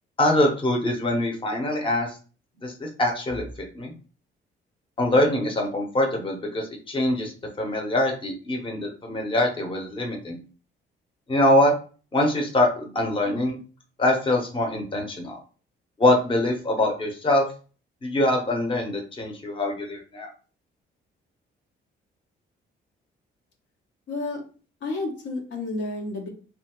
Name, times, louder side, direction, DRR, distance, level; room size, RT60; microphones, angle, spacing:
voice 1, 0.2-2.2 2.6-3.9 5.0-10.4 11.3-11.7 12.1-13.6 14.0-15.4 16.0-17.5 18.0-20.3, left 1 dB, 25° left, 1 dB, 0.8 m, -24 dB
voice 2, 24.1-24.4 24.8-26.3, left 2 dB, 70° left, 0 dB, 0.8 m, -30 dB
2.8 x 2.3 x 2.9 m, 0.38 s
cardioid pair, 90°, 20 cm